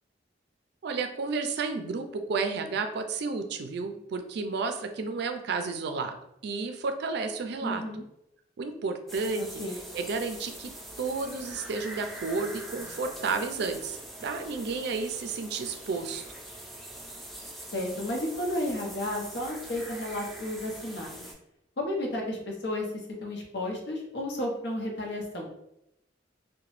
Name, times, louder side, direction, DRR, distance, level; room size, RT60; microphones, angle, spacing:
voice 1, 0.8-6.1 6.4-7.8 8.6-9.4 9.9-10.7 11.0-16.2, right 4 dB, 65° right, 6 dB, 0.4 m, -32 dB
voice 2, 7.6-8.0 9.4-9.8 17.7-21.3 21.8-22.9 23.2-25.5, left 1 dB, 70° left, 0 dB, 0.7 m, -32 dB
sound 1, 9.1-21.3, right 1 dB, ahead, 0.5 m, -43 dB
2.9 x 2.1 x 3.0 m, 0.81 s
head